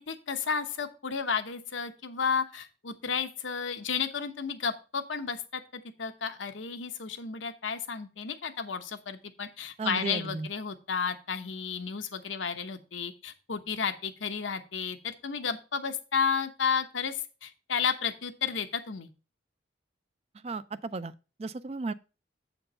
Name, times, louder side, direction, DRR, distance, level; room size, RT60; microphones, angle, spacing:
voice 1, 0.1-19.1, left 6 dB, 85° left, 0.9 m, -32 dB
voice 2, 9.8-10.5 20.4-21.1 21.4-21.9, right 3 dB, 35° right, 0.3 m, -34 dB
7.6 x 4.5 x 5.3 m
head